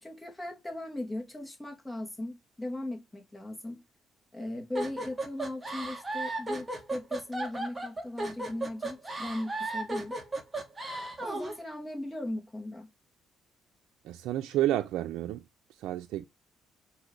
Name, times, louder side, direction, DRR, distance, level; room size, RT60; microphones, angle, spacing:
voice 1, 0.0-3.8 4.3-10.2 11.2-12.9, left 1 dB, 10° left, 2.4 m, -38 dB
sound 1, 4.7-11.6, right 2 dB, 20° right, 1.9 m, -35 dB
voice 2, 14.0-15.4 15.8-16.2, right 13 dB, 90° right, 0.4 m, -30 dB
4.8 x 4.7 x 5.1 m
cardioid pair, 90°, 0 cm